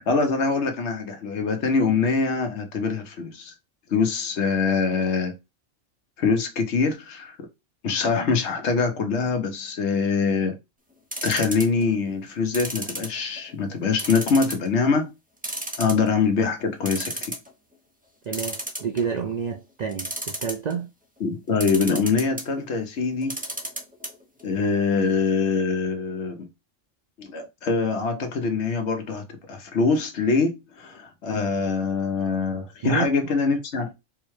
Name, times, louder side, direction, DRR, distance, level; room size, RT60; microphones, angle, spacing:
voice 1, 0.0-3.5 3.9-5.4 6.2-7.4 7.8-10.6 11.2-15.1 15.8-17.4 21.2-23.3 24.4-26.5 27.2-33.9, left 4 dB, 65° left, 1.0 m, -24 dB
sound 1, 11.1-11.8 12.5-13.5 14.0-14.7 15.0-15.1 15.4-16.3 16.6-16.7 16.9-17.5 18.3-19.2 19.9-20.7 21.6-22.5 23.2-24.1 24.4-24.5 24.7-24.8, right 1 dB, 10° right, 0.4 m, -32 dB
voice 2, 18.3-20.9 32.8-33.0, right 6 dB, 75° right, 0.3 m, -29 dB
4.5 x 2.1 x 3.1 m
omnidirectional pair, 1.3 m